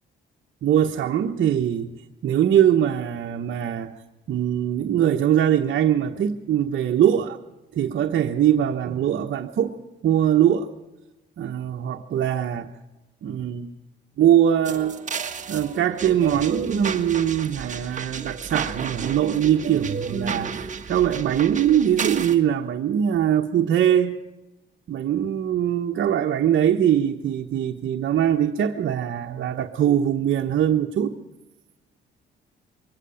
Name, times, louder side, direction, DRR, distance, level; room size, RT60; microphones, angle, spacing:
voice 1, 0.6-1.9 2.2-3.9 4.3-7.4 7.7-9.7 10.0-10.7 11.4-12.7 13.2-13.7 14.2-14.9 15.5-24.2 24.9-31.1, right 10 dB, 65° right, 2 dB, 1.3 m, -22 dB
sound 1, 14.6-22.4, right 6 dB, 40° right, 1.6 m, -32 dB
23.5 x 16.5 x 7.1 m, 1.0 s
cardioid pair, 90°, 20 cm